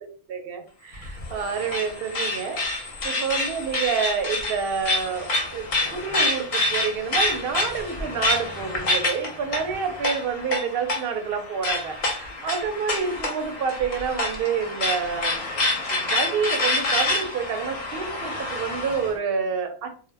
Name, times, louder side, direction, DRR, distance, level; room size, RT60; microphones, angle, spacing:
voice 1, 0.3-15.4 15.9-20.1, right 6 dB, 65° right, 5 dB, 0.7 m, -28 dB
sound 1, 0.9-19.1, left 2 dB, 50° left, 0.6 m, -27 dB
2.1 x 2.0 x 3.2 m, 0.43 s
omnidirectional pair, 1.1 m